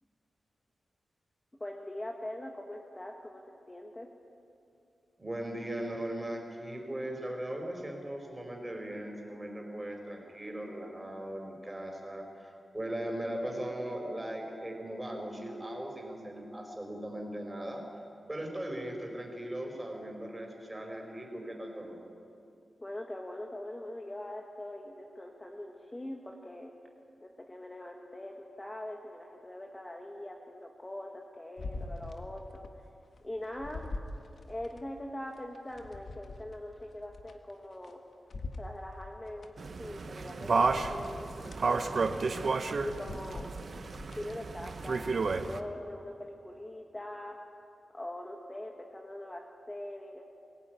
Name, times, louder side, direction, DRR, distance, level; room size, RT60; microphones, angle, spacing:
voice 1, 1.6-4.1 22.8-26.7 27.2-32.7 33.2-33.9 34.5-38.0 38.6-42.0 42.6-43.5 44.1-47.4 47.9-50.2, left 1 dB, 20° left, 1 dB, 1.7 m, -42 dB
voice 2, 5.2-17.9 18.3-22.0, right 1 dB, 15° right, 1 dB, 5.0 m, -38 dB
sound 1, 31.6-32.8 33.2-34.8 35.3-37.9 38.3-39.5 40.0-40.1 40.5-41.6 42.1-42.3 42.7-44.3 44.8-44.9, left 2 dB, 70° left, 1.6 m, -44 dB
sound 2, 39.6-45.6, right 4 dB, 55° right, 1.1 m, -32 dB
23.5 x 16.5 x 9.6 m, 2.6 s
wide cardioid pair, 95°, 0 cm